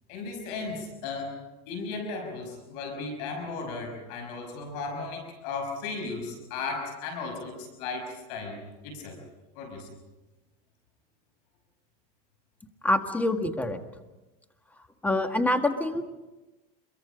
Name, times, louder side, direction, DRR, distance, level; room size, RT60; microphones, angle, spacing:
voice 1, 0.1-1.4 1.7-8.6 8.8-9.2 9.6-9.9, left 4 dB, 75° left, 4 dB, 5.6 m, -35 dB
voice 2, 12.8-13.8 15.0-16.0, left 1 dB, 10° left, 6 dB, 1.7 m, -25 dB
26.5 x 23.0 x 5.1 m, 1.1 s
supercardioid pair, 130°, 20 cm